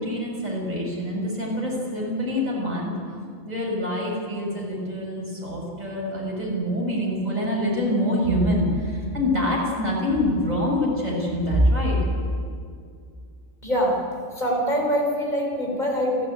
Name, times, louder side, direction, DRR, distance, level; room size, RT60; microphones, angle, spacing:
voice 1, 0.0-2.9 3.4-12.0, equal, 30° right, -3 dB, 6.6 m, -25 dB
voice 2, 13.6-14.0 14.3-16.3, equal, 35° left, 0 dB, 5.2 m, -24 dB
29.0 x 14.5 x 9.2 m, 2.2 s
omnidirectional pair, 1.3 m